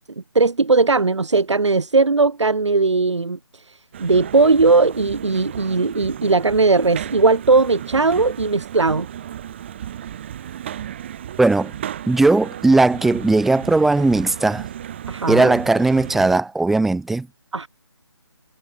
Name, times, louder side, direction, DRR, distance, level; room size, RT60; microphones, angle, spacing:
voice 1, 0.4-9.1 15.1-15.5 17.5-17.7, right 3 dB, 85° right, 3.4 m, -18 dB
sound 1, 3.9-16.4, right 10 dB, 25° right, 7.9 m, -34 dB
voice 2, 11.4-11.7 12.1-14.7 15.3-17.3, right 2 dB, ahead, 1.6 m, -17 dB
hypercardioid pair, 170°, 15 cm